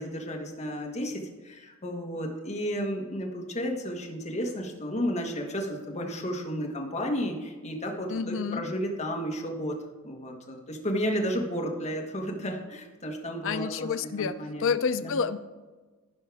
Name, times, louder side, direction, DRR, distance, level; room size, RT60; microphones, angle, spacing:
voice 1, 0.0-9.7 10.0-13.9 14.2-14.7 15.0-15.1, equal, 30° left, 0 dB, 1.5 m, -32 dB
voice 2, 8.1-8.7 13.4-14.3 14.6-15.4, left 5 dB, 65° left, 12 dB, 0.5 m, -29 dB
15.0 x 5.5 x 3.5 m, 1.3 s
head